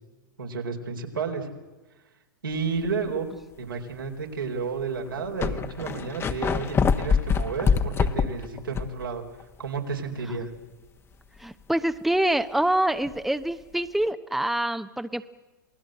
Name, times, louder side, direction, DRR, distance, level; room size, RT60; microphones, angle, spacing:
voice 1, 0.4-1.5 2.4-3.3 3.6-9.3 9.6-10.5, right 5 dB, 90° right, 2 dB, 4.4 m, -31 dB
sound 1, 2.8-3.1 3.8-3.9 4.8-4.9 5.1-9.0 9.4-9.5 13.0-13.2, left 6 dB, 20° left, 1.3 m, -25 dB
voice 2, 11.4-15.3, right 1 dB, ahead, 10 dB, 0.9 m, -25 dB
27.5 x 19.5 x 7.8 m, 1.2 s
hypercardioid pair, 110°, 11 cm